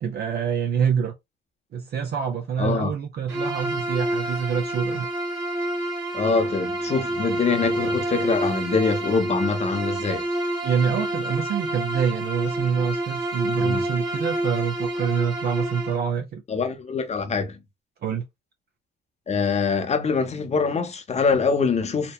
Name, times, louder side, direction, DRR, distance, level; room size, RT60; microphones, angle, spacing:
voice 1, 0.0-1.1 1.7-5.1 10.6-16.4 18.0-18.2, right 7 dB, 55° right, 0.5 m, -26 dB
voice 2, 2.6-2.9 6.1-10.2 13.6-13.8 16.5-17.6 19.3-22.1, left 5 dB, 35° left, 0.7 m, -24 dB
Bowed string instrument, 3.3-16.1, right 1 dB, 80° right, 1.5 m, -28 dB
2.9 x 2.1 x 2.2 m
cardioid pair, 90°, 20 cm